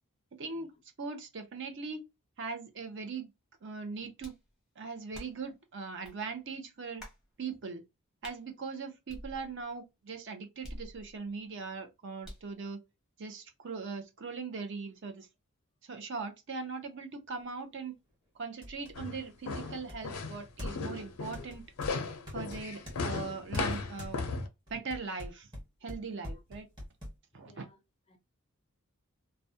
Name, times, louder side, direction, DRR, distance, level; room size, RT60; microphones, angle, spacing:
voice 1, 0.4-0.7 1.0-2.0 2.4-3.3 3.6-4.3 4.8-7.0 7.4-7.8 8.2-12.8 13.2-15.3 15.8-17.9 18.4-21.6 22.3-24.2 24.7-25.5 25.8-26.7 27.3-27.7, right 4 dB, 55° right, 0.6 m, -40 dB
sound 1, 4.2-4.5 5.1-5.5 6.0-6.2 7.0-7.3 8.2-8.4 9.1-9.7 10.6-11.3 12.2-12.6, equal, 5° right, 0.7 m, -47 dB
sound 2, 17.5-17.6 18.1-18.2 18.6-19.0 19.9-21.0 21.3-23.0 23.5-24.2 24.7-27.2, left 1 dB, 20° right, 1.2 m, -44 dB
sound 3, 19.0-24.5, left 4 dB, 85° left, 0.5 m, -36 dB
voice 2, 26.0-26.4 27.3-27.8 28.1-28.2, left 1 dB, 25° left, 0.4 m, -61 dB
2.3 x 2.1 x 2.6 m
head